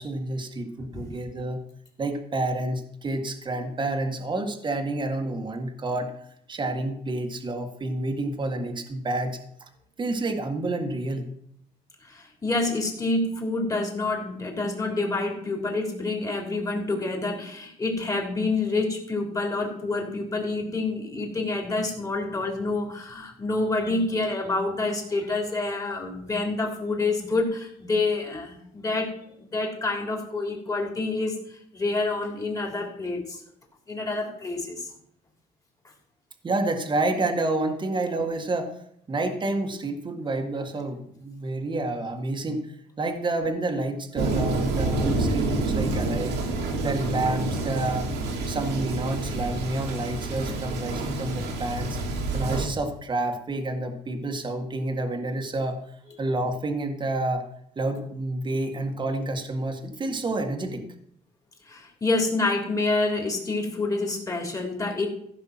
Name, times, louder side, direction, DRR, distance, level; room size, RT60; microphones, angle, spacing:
voice 1, 0.0-1.6 2.0-6.1 6.5-9.4 10.0-11.3 36.4-38.8 39.1-46.4 46.8-48.1 48.5-52.0 52.3-55.8 56.2-57.4 57.8-60.8, right 2 dB, 25° right, 4 dB, 1.8 m, -29 dB
voice 2, 12.0-33.4 33.9-34.9 61.7-65.1, left 3 dB, 20° left, 1 dB, 3.4 m, -28 dB
Thunder, 44.2-52.7, right 2 dB, 85° right, 2.8 m, -28 dB
15.5 x 6.0 x 6.0 m, 0.70 s
cardioid pair, 110°, 17 cm